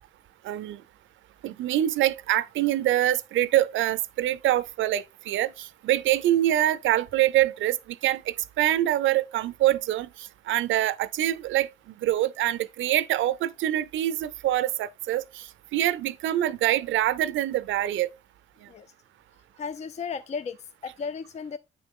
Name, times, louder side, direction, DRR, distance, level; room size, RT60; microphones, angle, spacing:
voice 1, 0.4-0.8 1.4-7.8 8.0-10.1 10.5-11.7 12.0-15.2 15.7-18.1, right 13 dB, 75° right, 0.5 m, -25 dB
voice 2, 19.6-21.6, left 5 dB, 35° left, 0.4 m, -35 dB
8.9 x 3.7 x 3.6 m
cardioid pair, 90°, 20 cm